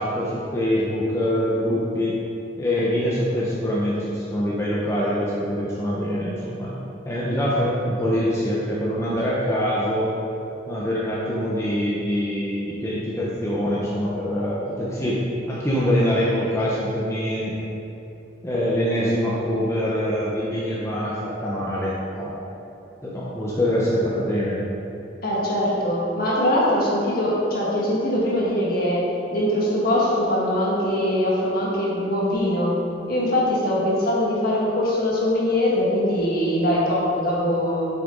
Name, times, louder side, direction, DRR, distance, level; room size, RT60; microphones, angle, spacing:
voice 1, 0.0-2.2 2.6-6.8 7.0-10.1 10.7-15.2 15.5-17.6 18.4-22.4 23.0-24.6, equal, 15° left, -7 dB, 0.9 m, -24 dB
voice 2, 25.2-32.8 33.1-37.9, left 1 dB, 50° left, -5 dB, 1.8 m, -22 dB
8.2 x 6.7 x 3.9 m, 2.9 s
head